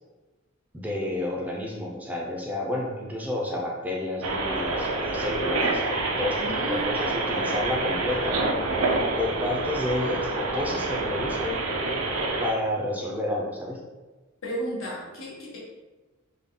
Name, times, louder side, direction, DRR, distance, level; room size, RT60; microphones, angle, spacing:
voice 1, 0.7-8.4 9.2-11.6 12.4-13.8, left 1 dB, 10° right, -2 dB, 0.5 m, -30 dB
sound 1, 4.2-12.5, right 2 dB, 85° right, 0.5 m, -27 dB
voice 2, 6.4-7.2 14.4-15.6, right 1 dB, 80° left, -5 dB, 1.2 m, -34 dB
3.6 x 2.2 x 3.7 m, 1.2 s
head